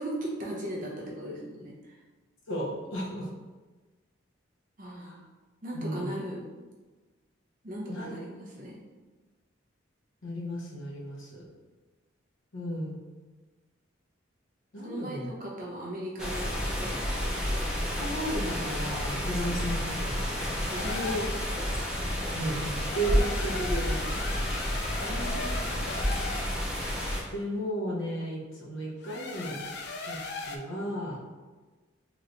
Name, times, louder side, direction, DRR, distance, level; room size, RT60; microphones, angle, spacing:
voice 1, 0.0-2.0 4.8-5.2 5.6-6.4 7.6-8.8 14.8-17.5 20.7-21.3 24.8-25.5, equal, 40° right, -4 dB, 0.7 m, -37 dB
voice 2, 2.5-3.3 5.0-5.2 5.7-6.1 7.9-8.2 10.2-11.5 12.5-13.0 14.7-15.3 18.0-20.7 22.0-24.3 24.6-25.0 27.3-29.6 30.0-30.2 30.5-31.2, right 1 dB, 75° left, -4 dB, 0.8 m, -34 dB
sound 1, 16.2-27.2, equal, 5° right, 0.5 m, -30 dB
sound 2, 20.8-21.3 22.7-26.5 29.0-30.6, left 3 dB, 55° left, 0.3 m, -38 dB
3.2 x 3.0 x 2.5 m, 1.3 s
head